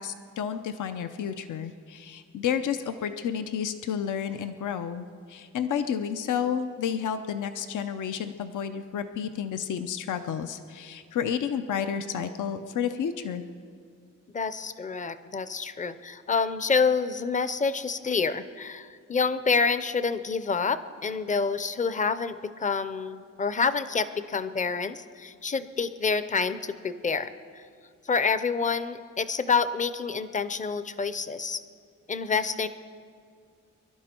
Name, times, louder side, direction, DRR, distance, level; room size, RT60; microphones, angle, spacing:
voice 1, 0.0-13.4, left 8 dB, 80° left, 9 dB, 0.7 m, -31 dB
voice 2, 14.3-27.6 28.0-31.6 32.1-32.7, left 5 dB, 25° left, 13 dB, 0.6 m, -28 dB
25.0 x 12.0 x 4.4 m, 2.2 s
wide cardioid pair, 140°, 30 cm